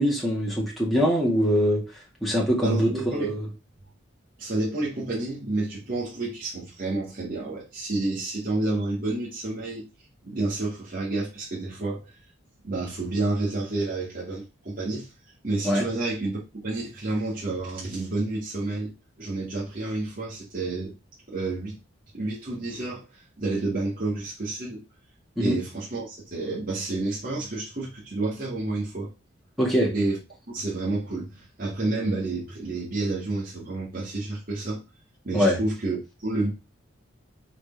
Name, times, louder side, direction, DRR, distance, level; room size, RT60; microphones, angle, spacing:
voice 1, 0.0-1.8 2.2-3.5 15.6-15.9 25.4-25.6 29.6-29.9 35.3-35.6, equal, ahead, 2.1 m, -23 dB
voice 2, 2.6-3.3 4.4-9.8 10.2-12.1 12.6-15.1 15.4-18.9 19.2-21.0 21.3-21.8 22.1-24.8 25.4-29.1 29.9-30.2 30.5-34.8 35.2-36.5, right 2 dB, 45° right, 2.2 m, -30 dB
5.0 x 4.1 x 5.2 m
head